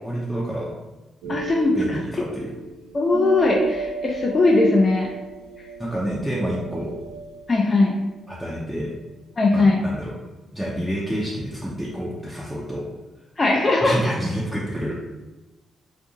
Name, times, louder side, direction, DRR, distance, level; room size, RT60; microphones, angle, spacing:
voice 1, 0.0-0.8 1.2-1.4 1.8-2.5 5.8-6.9 8.3-8.9 9.5-10.1 10.5-12.9 13.8-15.0, equal, 5° right, -6 dB, 0.6 m, -28 dB
sound 1, 1.2-8.4, right 3 dB, 75° right, 0.3 m, -35 dB
voice 2, 1.3-2.0 2.9-5.1 7.5-7.9 9.4-9.8 13.4-14.1, left 2 dB, 35° left, -1 dB, 0.4 m, -19 dB
2.5 x 2.5 x 2.6 m, 1.1 s
hypercardioid pair, 40°, 0 cm